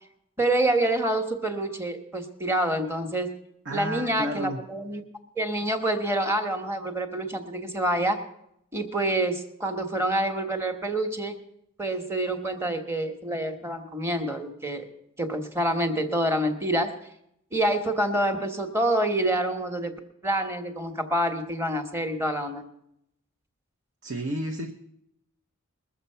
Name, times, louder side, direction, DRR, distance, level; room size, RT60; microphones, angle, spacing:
voice 1, 0.4-3.3 3.7-5.0 5.4-8.2 8.7-11.4 11.8-14.8 15.2-16.9 17.5-19.9 20.2-22.6, right 1 dB, 10° right, 6 dB, 1.1 m, -27 dB
voice 2, 3.7-4.6 24.0-24.7, right 1 dB, 60° right, 4 dB, 0.9 m, -31 dB
21.5 x 7.2 x 5.6 m, 0.78 s
head